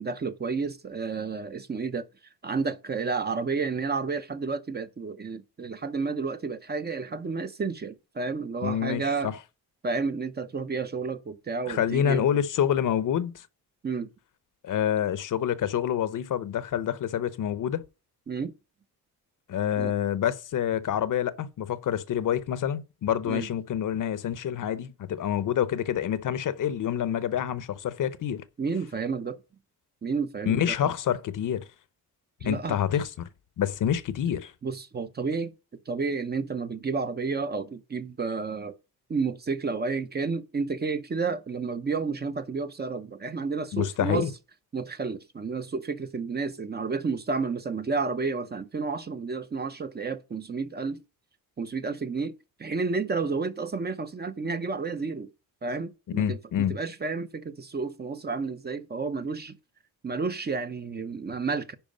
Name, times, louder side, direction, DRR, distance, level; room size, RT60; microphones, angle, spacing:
voice 1, 0.0-2.1 2.4-9.3 9.8-12.3 13.8-14.1 18.3-18.5 19.8-19.9 23.3-23.5 28.6-29.4 30.0-30.8 32.4-32.8 34.6-35.5 35.9-38.7 39.1-44.3 44.7-51.0 51.6-55.3 55.6-59.6 60.0-61.8, right 4 dB, 25° right, 0.7 m, -31 dB
voice 2, 8.6-9.3 11.7-13.5 14.6-17.8 19.5-28.4 30.5-31.6 32.4-33.3 33.6-34.5 43.7-44.3 56.1-56.8, left 9 dB, 55° left, 0.7 m, -27 dB
10.5 x 4.7 x 5.2 m
cardioid pair, 150°, 37 cm